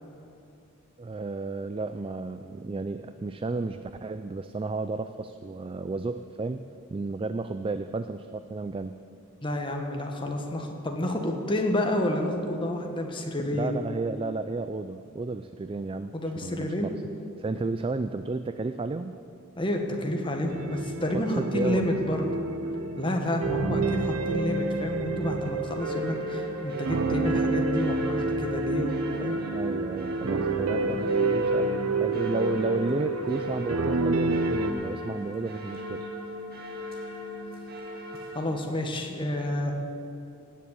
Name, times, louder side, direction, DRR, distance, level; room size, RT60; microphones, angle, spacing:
voice 1, 1.0-6.6 6.9-9.0 13.5-17.0 17.4-19.2 21.1-21.9 29.5-31.7 31.9-36.0, right 3 dB, 25° right, 10 dB, 0.3 m, -32 dB
voice 2, 9.4-13.8 16.1-16.9 19.5-22.4 22.9-29.4 38.3-39.7, left 1 dB, 25° left, 2 dB, 1.4 m, -29 dB
sound 1, 20.5-34.7, right 3 dB, 85° right, 0.7 m, -29 dB
sound 2, 25.8-38.5, left 1 dB, 45° right, 2.0 m, -38 dB
17.5 x 7.4 x 8.1 m, 2.6 s
head